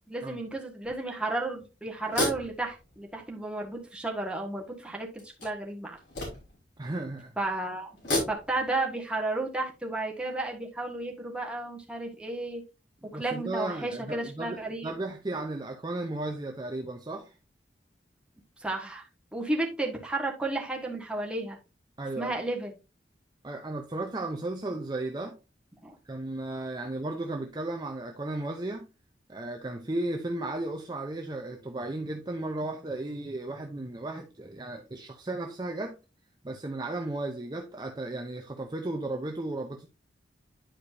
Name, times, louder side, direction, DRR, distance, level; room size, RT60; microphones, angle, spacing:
voice 1, 0.1-6.0 7.4-7.9 8.3-12.6 13.1-14.9 18.6-19.1 19.3-21.6 22.2-22.7 25.8-25.9, right 2 dB, 5° right, 1.5 m, -33 dB
sound 1, 0.9-1.0 2.0-3.4 4.0-4.1 5.2-6.7 7.9-8.8, left 2 dB, 65° left, 4.4 m, -33 dB
voice 2, 6.8-7.3 13.1-17.3 22.0-22.3 23.4-25.4 26.0-28.9 29.3-36.0 36.4-39.9, right 2 dB, 25° right, 0.6 m, -35 dB
10.0 x 4.9 x 2.6 m
head